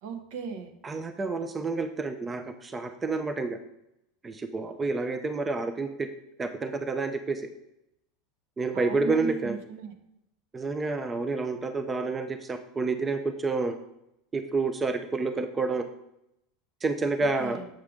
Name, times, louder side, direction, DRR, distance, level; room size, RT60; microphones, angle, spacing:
voice 1, 0.0-0.7 8.7-9.9 17.2-17.7, right 5 dB, 70° right, 7 dB, 0.9 m, -37 dB
voice 2, 0.8-3.6 4.2-6.1 6.4-7.5 8.6-9.5 10.5-13.8 14.3-15.8 16.8-17.6, right 3 dB, 20° right, 8 dB, 0.4 m, -29 dB
7.5 x 4.9 x 3.6 m, 0.82 s
supercardioid pair, 130°, 0 cm